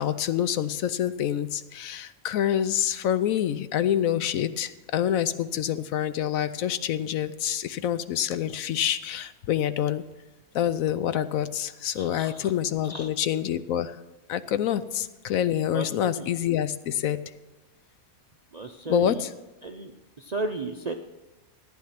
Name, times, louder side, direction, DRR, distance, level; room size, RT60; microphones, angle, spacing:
voice 1, 0.0-10.0 10.5-13.9 14.3-17.2 18.9-19.3, left 10 dB, 75° left, 14 dB, 1.0 m, -27 dB
voice 2, 12.0-12.5 12.8-13.1 15.7-16.3 18.5-19.2 19.6-19.9 20.2-20.9, right 2 dB, 50° right, 4 dB, 0.5 m, -34 dB
14.5 x 9.4 x 5.8 m, 1.1 s
omnidirectional pair, 1.5 m